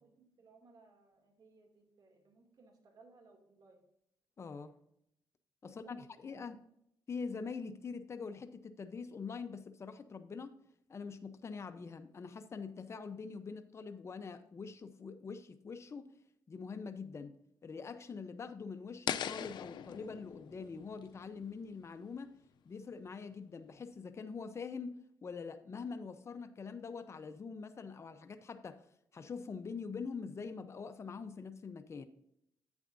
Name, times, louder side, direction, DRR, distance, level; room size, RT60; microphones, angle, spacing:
voice 1, 0.0-3.8 5.6-6.4, right 3 dB, 60° right, 2 dB, 2.5 m, -63 dB
voice 2, 4.4-4.7 5.6-6.6 7.1-10.6 10.9-16.1 16.5-22.4 22.6-28.8 29.1-32.1, left 5 dB, 35° left, 8 dB, 0.7 m, -44 dB
sound 1, 19.1-22.1, left 9 dB, 75° left, 0.5 m, -41 dB
10.5 x 8.4 x 2.6 m, 0.75 s
cardioid pair, 105°, 8 cm